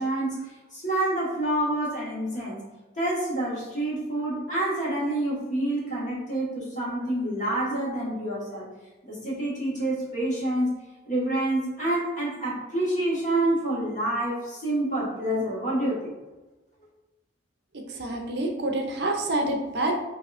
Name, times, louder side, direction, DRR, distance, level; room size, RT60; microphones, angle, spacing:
voice 1, 0.0-2.6 3.0-8.7 9.1-10.7 11.1-16.1, right 1 dB, 40° left, -6 dB, 1.4 m, -27 dB
voice 2, 17.7-20.0, right 1 dB, 55° right, 2 dB, 0.6 m, -27 dB
5.6 x 2.7 x 2.5 m, 1.1 s
head